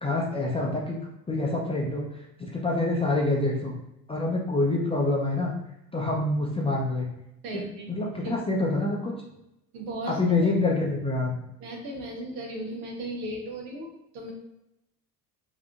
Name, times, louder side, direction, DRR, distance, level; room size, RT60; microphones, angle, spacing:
voice 1, 0.0-1.0 1.3-3.7 4.1-5.5 5.9-7.1 7.5-7.6 7.9-9.1 10.1-11.4, left 2 dB, 10° left, -3 dB, 0.5 m, -26 dB
voice 2, 7.4-7.9 8.2-8.4 9.7-10.5 11.6-14.3, right 1 dB, 65° right, 0 dB, 1.0 m, -36 dB
3.4 x 2.7 x 2.4 m, 0.84 s
figure-of-eight pair, 60°, 50 cm